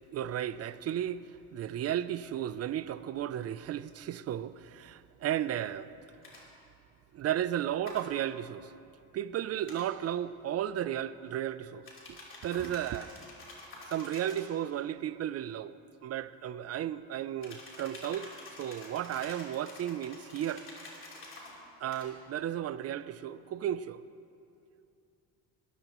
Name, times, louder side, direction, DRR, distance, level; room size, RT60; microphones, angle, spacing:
voice 1, 0.1-5.9 7.1-8.7 9.1-11.8 12.1-13.1 13.9-15.7 16.0-18.3 18.6-20.6 21.8-24.0, right 11 dB, 45° right, 0.5 m, -34 dB
sound 1, 6.2-6.4 7.8-8.0 9.7-9.9 11.9-14.5 17.4-21.5 21.9-22.1, left 2 dB, 35° left, 3.6 m, -48 dB
20.0 x 14.0 x 3.0 m
cardioid pair, 115°, 36 cm